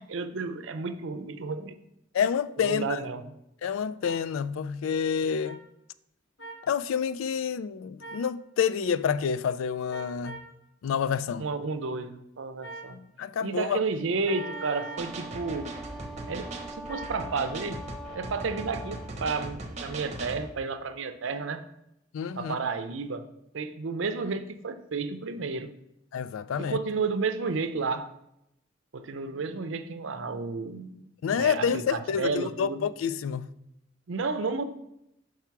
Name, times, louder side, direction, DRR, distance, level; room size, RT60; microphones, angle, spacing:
voice 1, 0.0-1.8 2.6-3.2 11.4-13.0 13.4-15.7 16.3-17.8 18.1-21.6 22.4-23.3 23.5-25.7 26.6-28.1 28.9-31.1 31.3-32.9 34.1-34.6, right 4 dB, 75° right, 0.5 m, -32 dB
voice 2, 2.1-3.0 3.6-5.6 6.7-10.4 10.8-11.5 12.9-13.8 22.1-22.6 26.1-26.8 31.2-33.5, left 7 dB, 90° left, 0.3 m, -28 dB
sound 1, 4.0-4.2 5.4-5.6 6.4-6.6 8.0-8.3 9.9-10.5 12.6-12.9 14.2-15.1 16.9-17.2, right 3 dB, 65° left, 1.5 m, -41 dB
Wind instrument woodwind instrument, 14.3-19.2, right 2 dB, ahead, 0.4 m, -43 dB
sound 2, 15.0-20.5, right 2 dB, 35° right, 0.8 m, -39 dB
5.7 x 4.7 x 4.7 m
head